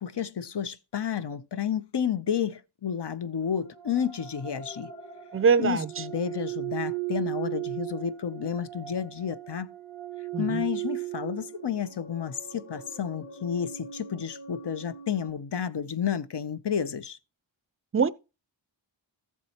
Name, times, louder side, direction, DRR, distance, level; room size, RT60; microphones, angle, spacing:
voice 1, 0.0-4.9 5.6-9.7 10.4-17.2, left 8 dB, 60° left, 0.7 m, -31 dB
sound 1, 3.4-15.3, right 14 dB, 40° left, 2.2 m, -38 dB
voice 2, 5.3-6.0 10.3-10.6 17.9-18.1, right 6 dB, 30° right, 0.5 m, -23 dB
14.0 x 7.4 x 2.8 m
wide cardioid pair, 80°, 47 cm